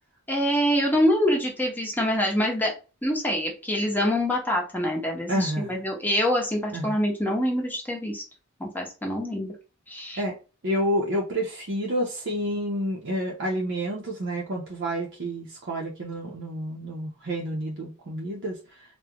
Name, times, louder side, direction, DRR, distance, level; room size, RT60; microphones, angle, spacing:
voice 1, 0.3-2.7 3.0-8.2 8.6-9.5 9.9-10.2, equal, 10° left, -1 dB, 0.8 m, -25 dB
voice 2, 5.3-5.8 6.7-7.0 10.2-10.4 10.6-19.0, equal, 55° right, -2 dB, 0.6 m, -29 dB
3.6 x 2.1 x 2.8 m, 0.33 s
head